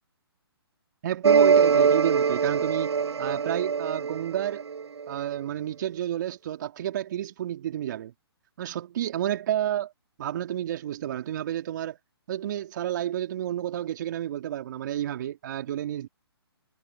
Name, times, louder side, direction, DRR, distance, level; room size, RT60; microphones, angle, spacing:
voice 1, 1.0-4.7 5.1-8.1 8.6-9.9 10.2-12.0 12.3-16.1, right 11 dB, 45° right, 2.9 m, -30 dB
sound 1, 1.2-5.1, right 6 dB, 80° right, 0.7 m, -22 dB
hypercardioid pair, 140°, 14 cm